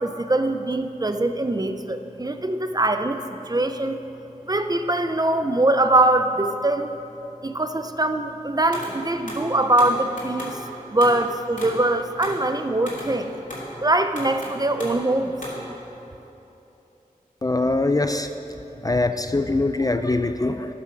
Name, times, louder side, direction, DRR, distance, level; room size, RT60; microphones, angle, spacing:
voice 1, 0.0-4.0 4.4-6.9 7.4-10.6 10.9-13.3 13.8-15.3, right 2 dB, 25° right, 8 dB, 0.5 m, -22 dB
sound 1, 8.7-9.0 9.3-10.6 11.0-11.3 11.6-13.8 14.2-15.1 15.4-15.7, equal, 60° left, 2.7 m, -36 dB
voice 2, 17.4-18.3 18.8-20.7, left 2 dB, 25° left, 8 dB, 0.4 m, -22 dB
12.5 x 6.9 x 5.9 m, 3.0 s
wide cardioid pair, 75°, 15 cm